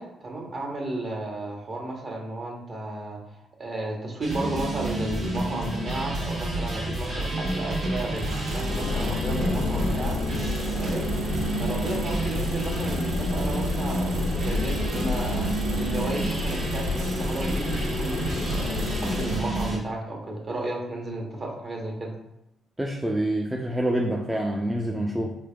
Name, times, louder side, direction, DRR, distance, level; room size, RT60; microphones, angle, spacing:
voice 1, 0.0-3.2 3.6-10.2 10.8-11.1 11.6-22.1, right 2 dB, 40° right, 0 dB, 0.9 m, -33 dB
sound 1, 4.2-19.8, right 1 dB, 60° right, 1.3 m, -29 dB
Engine, 8.1-19.7, right 6 dB, 85° right, 0.4 m, -44 dB
sound 2, 8.7-19.5, left 3 dB, 65° left, 0.4 m, -31 dB
voice 2, 22.8-25.3, right 1 dB, 10° right, -1 dB, 0.4 m, -26 dB
4.0 x 3.2 x 2.2 m, 0.84 s
cardioid pair, 90°, 0 cm